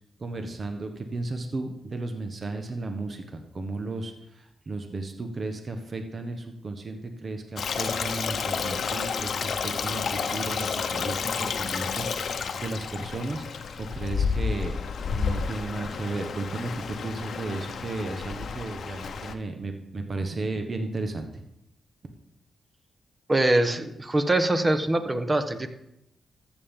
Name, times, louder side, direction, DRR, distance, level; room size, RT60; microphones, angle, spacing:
voice 1, 0.2-14.8 15.0-21.3, right 2 dB, 50° right, 6 dB, 1.2 m, -34 dB
Stream, 7.6-19.3, left 6 dB, 70° left, 0.8 m, -31 dB
voice 2, 23.3-25.7, right 1 dB, 30° right, 9 dB, 1.2 m, -23 dB
14.0 x 7.2 x 3.8 m, 0.83 s
supercardioid pair, 45°, 0 cm